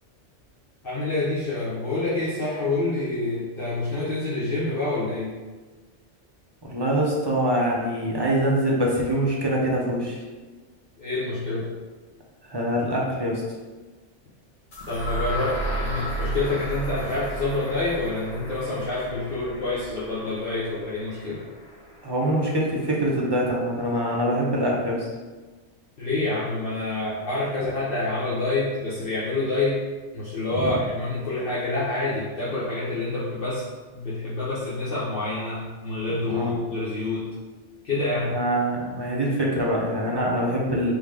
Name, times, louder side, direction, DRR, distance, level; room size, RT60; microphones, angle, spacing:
voice 1, 0.8-5.3 11.0-11.7 14.9-21.4 26.0-29.8 30.1-33.6 33.9-37.3 37.8-38.4, left 2 dB, 55° left, -9 dB, 0.9 m, -27 dB
voice 2, 6.6-10.2 12.5-13.4 22.0-25.1 30.5-30.7 36.3-36.5 38.3-40.9, right 1 dB, 30° right, -3 dB, 0.5 m, -24 dB
sound 1, 14.7-22.6, right 1 dB, 85° left, 1.7 m, -34 dB
3.6 x 2.9 x 3.3 m, 1.3 s
omnidirectional pair, 1.2 m